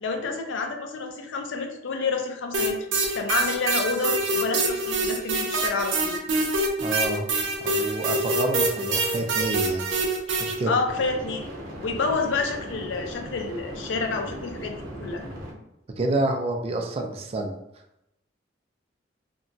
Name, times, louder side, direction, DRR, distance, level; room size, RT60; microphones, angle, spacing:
voice 1, 0.0-6.2 10.7-11.5 11.8-15.2, left 4 dB, 90° left, 4 dB, 0.5 m, -29 dB
sound 1, 2.5-10.5, right 2 dB, 80° right, 0.5 m, -25 dB
voice 2, 6.8-7.3 7.6-9.9 10.3-10.7 16.0-17.5, right 2 dB, 35° right, 3 dB, 0.3 m, -28 dB
sound 2, 10.9-15.5, right 1 dB, 50° right, 0.8 m, -38 dB
2.9 x 2.2 x 2.6 m, 0.84 s
head